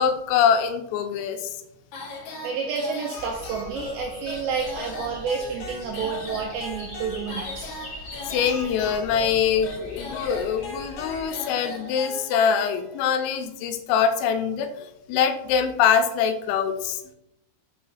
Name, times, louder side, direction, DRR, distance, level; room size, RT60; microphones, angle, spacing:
voice 1, 0.0-1.5 8.3-17.0, left 7 dB, 85° left, 7 dB, 3.3 m, -23 dB
sound 1, 1.9-13.0, left 2 dB, 65° left, 2.9 m, -38 dB
voice 2, 2.4-7.7, right 5 dB, 80° right, -1 dB, 2.5 m, -30 dB
sound 2, 3.2-11.3, left 1 dB, 30° left, 1.5 m, -41 dB
7.6 x 3.1 x 5.6 m, 0.84 s
omnidirectional pair, 5.9 m